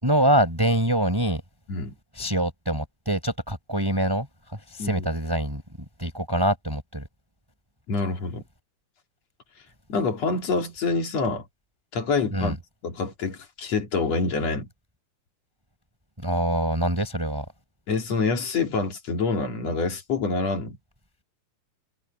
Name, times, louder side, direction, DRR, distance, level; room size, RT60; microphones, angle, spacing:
voice 1, 0.0-1.4 2.2-4.3 4.7-5.6 6.0-7.0 12.3-12.5 16.2-17.5, right 1 dB, 5° right, 5.6 m, -24 dB
voice 2, 7.9-8.4 9.9-11.4 11.9-12.6 12.8-14.7 17.9-20.8, left 4 dB, 55° left, 4.1 m, -26 dB
omnidirectional pair, 3.5 m